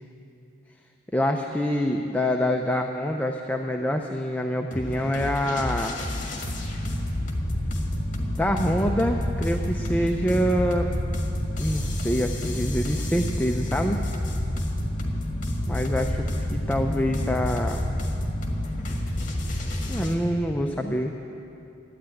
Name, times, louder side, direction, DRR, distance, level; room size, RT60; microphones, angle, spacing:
voice 1, 1.1-5.9 8.4-10.9 11.6-14.0 15.7-17.9 19.9-21.1, equal, 10° left, 3 dB, 0.5 m, -26 dB
sound 1, 4.7-20.2, left 1 dB, 45° left, 1.8 m, -29 dB
13.0 x 9.6 x 9.0 m, 2.9 s
head